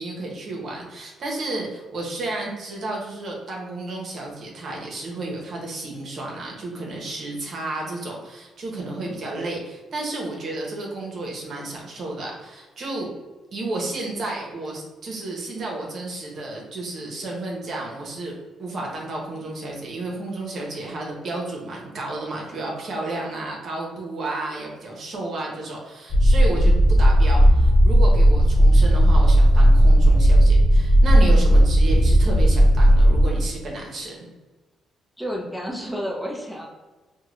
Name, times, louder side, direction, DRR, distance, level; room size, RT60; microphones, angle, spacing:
voice 1, 0.0-13.1 13.5-34.3, right 2 dB, 55° right, -1 dB, 0.9 m, -32 dB
sound 1, 26.1-33.3, equal, 40° left, 0.7 m, -15 dB
voice 2, 35.2-36.7, equal, ahead, -3 dB, 0.8 m, -31 dB
3.6 x 2.2 x 3.2 m, 1.2 s
cardioid pair, 90°, 0 cm